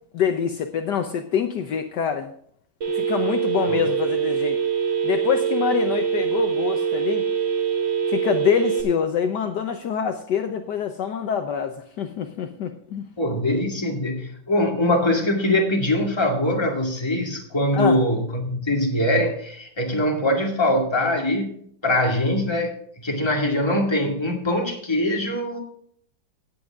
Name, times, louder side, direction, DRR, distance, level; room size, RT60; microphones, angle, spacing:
voice 1, 0.1-2.3 2.9-4.6 5.0-7.2 8.1-13.1 17.7-18.0, left 8 dB, 65° left, 6 dB, 1.4 m, -25 dB
Telephone, 2.8-8.8, right 7 dB, 70° right, 2.3 m, -24 dB
voice 2, 13.2-21.6 21.8-22.7 23.0-25.6, left 1 dB, 15° left, 0 dB, 2.3 m, -22 dB
17.5 x 8.0 x 3.6 m, 0.64 s
omnidirectional pair, 2.1 m